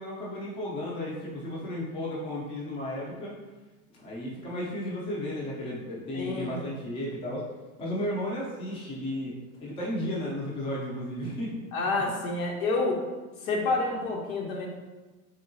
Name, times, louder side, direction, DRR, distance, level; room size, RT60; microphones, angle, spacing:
voice 1, 0.0-3.4 4.0-7.4 7.8-9.3 9.6-12.0, left 1 dB, 15° left, -5 dB, 0.5 m, -34 dB
voice 2, 6.1-6.6 11.7-13.0 13.4-14.7, left 3 dB, 75° left, 0 dB, 1.1 m, -28 dB
3.7 x 3.4 x 2.7 m, 1.2 s
supercardioid pair, 150°, 42 cm